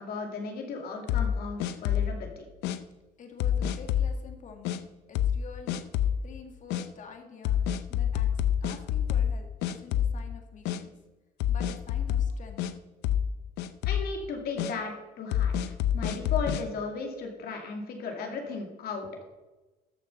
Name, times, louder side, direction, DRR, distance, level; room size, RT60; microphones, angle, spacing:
voice 1, 0.0-2.4 13.8-19.2, left 4 dB, 65° left, 3 dB, 2.5 m, -36 dB
sound 1, 1.1-2.2 2.6-2.8 3.4-4.1 4.6-4.8 5.1-5.4 5.7-6.2 6.7-6.8 7.4-9.4 9.6-10.3 10.6-10.8 11.4-12.7 13.0-13.3 13.6-14.1 14.6-14.7 15.3-16.6, left 9 dB, 90° left, 0.7 m, -27 dB
voice 2, 3.2-4.8 5.1-10.9 11.5-12.6 18.3-18.4, left 5 dB, 50° left, 4 dB, 2.0 m, -48 dB
13.5 x 7.1 x 5.5 m, 1.1 s
cardioid pair, 110°, 17 cm